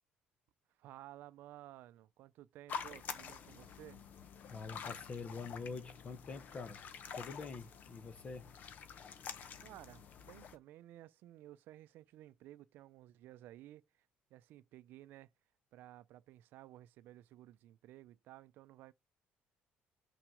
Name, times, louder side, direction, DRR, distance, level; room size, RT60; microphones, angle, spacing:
voice 1, 0.8-4.0 9.6-14.1 14.3-15.3 15.7-18.9, right 14 dB, 75° right, 0.5 m, -55 dB
sound 1, 2.7-10.6, left 7 dB, 50° left, 0.9 m, -48 dB
voice 2, 4.5-6.9 7.1-8.5, left 4 dB, 35° left, 1.2 m, -45 dB
6.0 x 4.6 x 6.4 m
cardioid pair, 110°, 4 cm